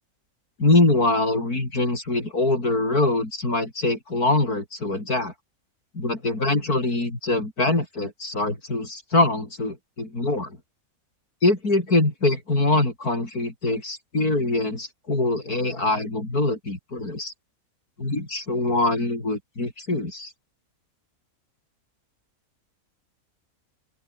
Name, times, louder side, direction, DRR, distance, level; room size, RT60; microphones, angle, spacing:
voice 1, 0.6-5.3 5.9-10.6 11.4-17.3 18.0-20.3, left 2 dB, 80° left, 6.5 m, -23 dB
open air
omnidirectional pair, 1.6 m